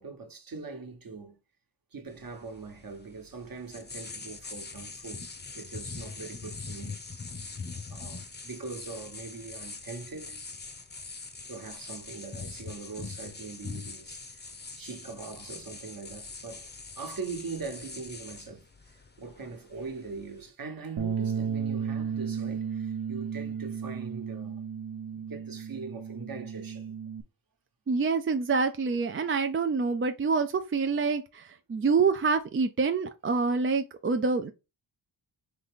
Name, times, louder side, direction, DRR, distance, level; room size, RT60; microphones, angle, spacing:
voice 1, 0.0-1.4 1.9-5.3 5.5-7.0 7.9-10.4 11.4-14.4 14.8-24.6 25.1-27.0, right 4 dB, 45° right, 1.2 m, -42 dB
sound 1, 2.1-20.5, left 4 dB, 20° left, 0.7 m, -43 dB
Bass guitar, 21.0-27.2, right 7 dB, 65° right, 0.8 m, -34 dB
voice 2, 27.9-34.5, right 4 dB, 30° right, 0.4 m, -26 dB
3.9 x 3.4 x 3.6 m
wide cardioid pair, 95°, 47 cm